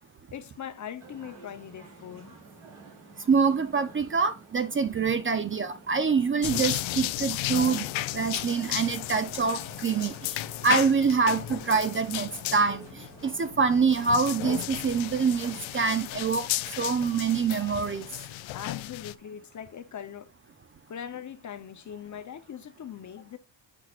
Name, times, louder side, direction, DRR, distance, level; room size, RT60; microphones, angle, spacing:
voice 1, 0.3-2.3 18.5-20.3 20.9-23.4, left 9 dB, 40° left, 0.7 m, -41 dB
sound 1, 1.0-16.0, right 3 dB, 90° right, 3.4 m, -50 dB
voice 2, 3.3-16.5 16.8-18.1, right 5 dB, 30° right, 0.5 m, -25 dB
sound 2, 6.4-19.1, left 16 dB, 85° left, 0.6 m, -34 dB
7.9 x 6.1 x 2.4 m
cardioid pair, 145°, 45 cm